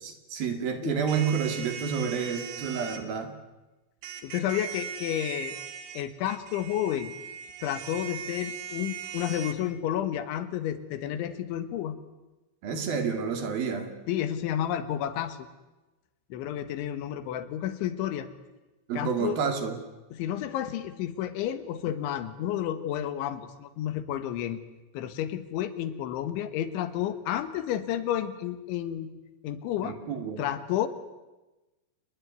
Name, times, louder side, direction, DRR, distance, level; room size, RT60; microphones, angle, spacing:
voice 1, 0.0-3.3 12.6-13.9 18.9-19.8 29.8-30.5, right 6 dB, 55° right, 7 dB, 3.9 m, -29 dB
sound 1, 1.1-3.0 4.0-9.6, right 8 dB, 80° right, 4.5 m, -39 dB
voice 2, 4.2-5.6 6.0-7.1 7.6-12.0 14.1-15.5 16.3-18.3 19.0-19.4 20.1-24.6 25.0-29.1 29.4-30.0 30.4-30.9, left 11 dB, 80° left, 12 dB, 3.8 m, -31 dB
28.5 x 20.5 x 9.6 m, 1.1 s
omnidirectional pair, 5.4 m